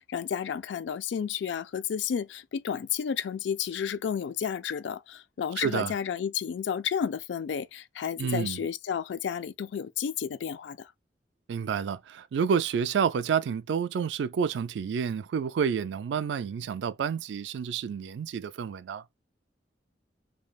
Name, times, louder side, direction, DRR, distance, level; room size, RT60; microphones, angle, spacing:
voice 1, 0.0-10.9, left 7 dB, 75° left, 0.3 m, -32 dB
voice 2, 5.6-5.9 8.2-8.6 11.5-19.0, right 7 dB, 75° right, 0.3 m, -29 dB
3.2 x 2.3 x 2.3 m
head